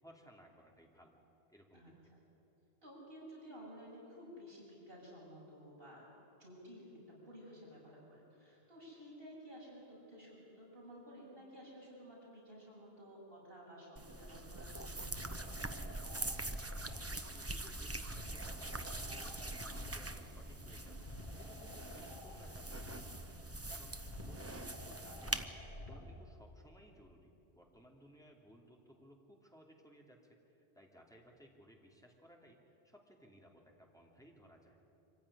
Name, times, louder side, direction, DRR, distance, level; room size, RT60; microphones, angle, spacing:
voice 1, 0.0-1.2 1.5-1.9 16.9-23.3 23.7-24.0 24.2-34.8, equal, 5° left, -1 dB, 2.8 m, -61 dB
voice 2, 2.8-6.1 6.4-15.8, equal, 65° right, -5 dB, 7.6 m, -54 dB
sound 1, 14.0-25.5, right 2 dB, 15° right, 0.7 m, -44 dB
sound 2, 14.1-26.1, left 1 dB, 55° left, 4.7 m, -50 dB
24.5 x 15.5 x 9.9 m, 2.8 s
omnidirectional pair, 1.0 m